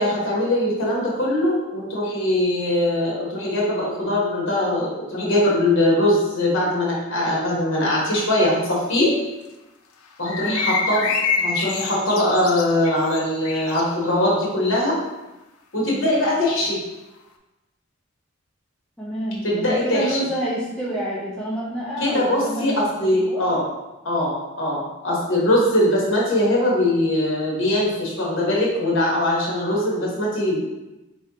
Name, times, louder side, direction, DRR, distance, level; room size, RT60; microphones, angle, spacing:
voice 1, 0.0-9.1 10.2-11.1 11.4-15.0 15.7-16.8 19.4-20.2 22.0-23.6 24.0-30.7, left 1 dB, 65° left, -4 dB, 1.2 m, -21 dB
sound 1, 10.3-13.9, left 5 dB, 85° left, 0.5 m, -26 dB
voice 2, 10.4-10.7 19.0-23.5, right 1 dB, 5° left, -7 dB, 0.7 m, -28 dB
4.5 x 3.1 x 2.9 m, 1.0 s
head